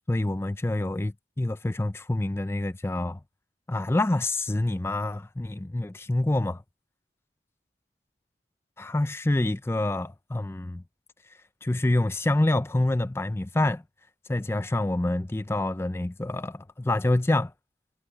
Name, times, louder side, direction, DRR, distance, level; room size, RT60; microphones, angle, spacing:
voice 1, 0.1-3.2 3.7-6.6 8.8-10.8 11.6-13.8 14.3-17.5, left 2 dB, 15° left, 0.4 m, -27 dB
head